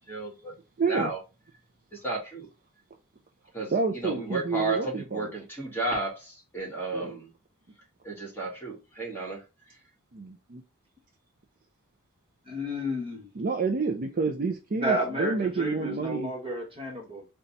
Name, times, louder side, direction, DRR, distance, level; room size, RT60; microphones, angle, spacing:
voice 1, 0.1-0.5 0.9-1.2 1.9-2.5 3.5-7.3 8.0-9.4, right 2 dB, 10° left, 1.6 m, -33 dB
voice 2, 0.8-1.1 3.7-5.3 6.9-7.2 10.1-10.6 13.4-16.3, right 4 dB, 40° right, 0.5 m, -29 dB
voice 3, 12.5-13.3 14.8-17.3, equal, 25° right, 1.1 m, -31 dB
4.0 x 2.3 x 3.9 m
head